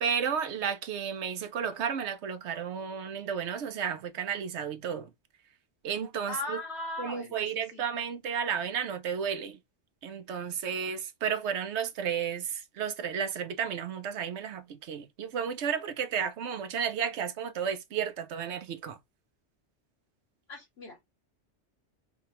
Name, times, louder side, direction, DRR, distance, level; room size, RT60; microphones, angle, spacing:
voice 1, 0.0-5.1 5.8-6.6 7.0-9.6 10.0-19.0, right 7 dB, 75° right, 1.0 m, -32 dB
voice 2, 6.3-7.8 20.5-21.0, left 2 dB, 60° left, 2.0 m, -38 dB
5.0 x 2.4 x 2.9 m
omnidirectional pair, 1.2 m